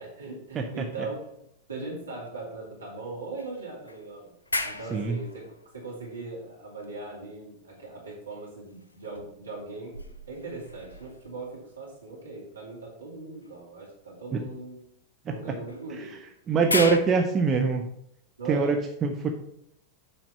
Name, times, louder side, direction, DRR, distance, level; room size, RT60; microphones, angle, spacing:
voice 1, 0.0-4.3 4.6-5.4 5.7-10.0 10.3-14.8 15.2-16.3 16.7-16.9 18.4-18.8, right 3 dB, 75° right, -4 dB, 2.5 m, -39 dB
sound 1, 0.6-1.9 2.3-2.4 3.4-6.8 8.6-11.7 13.4-13.6 15.7-17.0, left 2 dB, 75° left, 0.7 m, -37 dB
voice 2, 16.5-17.9 18.5-19.3, right 5 dB, 25° right, 3 dB, 0.8 m, -24 dB
8.8 x 4.3 x 5.7 m, 0.72 s
figure-of-eight pair, 90°, 0 cm